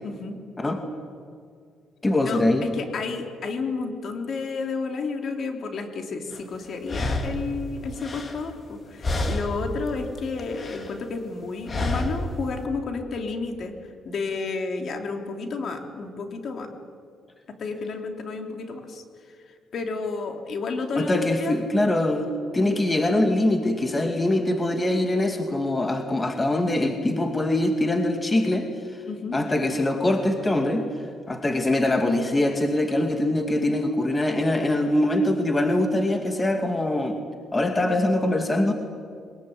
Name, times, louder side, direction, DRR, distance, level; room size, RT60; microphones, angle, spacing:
voice 1, 0.0-0.4 2.2-13.7 14.0-16.7 17.6-19.0 19.7-21.6 29.1-29.4, left 4 dB, 55° left, 4 dB, 3.6 m, -31 dB
voice 2, 2.0-2.7 21.0-28.7 29.3-30.8 31.3-37.2 37.5-38.7, left 1 dB, 20° left, 5 dB, 2.4 m, -23 dB
sound 1, 6.3-6.4 6.9-8.8 9.0-9.7 10.0-11.0 11.7-12.3, left 1 dB, 35° left, 3.4 m, -29 dB
22.5 x 20.5 x 9.6 m, 2.2 s
cardioid pair, 90°, 0 cm